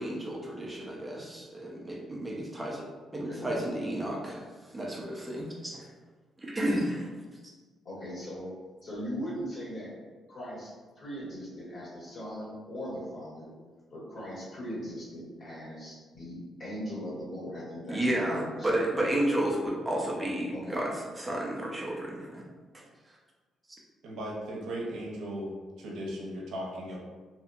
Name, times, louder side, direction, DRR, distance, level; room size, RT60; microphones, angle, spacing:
voice 1, 0.0-2.8 3.1-4.4 4.7-5.9 6.4-7.1 17.9-22.4 22.7-22.8, right 1 dB, 20° right, -3 dB, 0.6 m, -31 dB
voice 2, 3.1-3.4 7.8-8.5 8.8-9.9 10.3-13.5 13.9-18.7 20.5-20.8, equal, 55° left, -8 dB, 1.5 m, -39 dB
voice 3, 24.0-27.0, equal, 85° right, -3 dB, 0.7 m, -37 dB
2.6 x 2.6 x 2.3 m, 1.4 s
cardioid pair, 90°, 0 cm